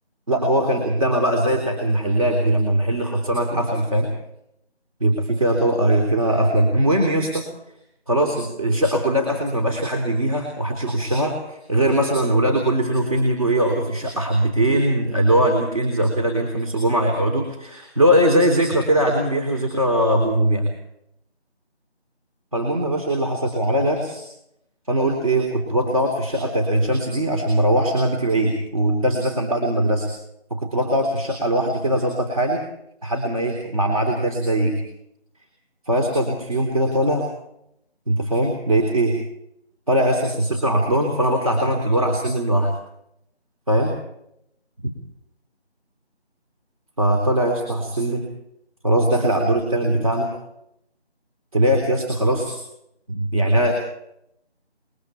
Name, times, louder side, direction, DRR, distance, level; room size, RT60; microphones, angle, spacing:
voice 1, 0.3-4.1 5.0-7.4 8.1-20.6 22.5-24.2 24.9-30.1 30.5-32.6 33.0-34.8 35.9-37.3 38.1-39.2 39.9-42.7 43.7-44.0 44.8-44.9 47.0-48.3 48.8-50.3 51.5-52.6 53.1-53.7, right 1 dB, 35° right, 2 dB, 3.7 m, -20 dB
28.5 x 22.0 x 4.5 m, 0.76 s
figure-of-eight pair, 175°, 33 cm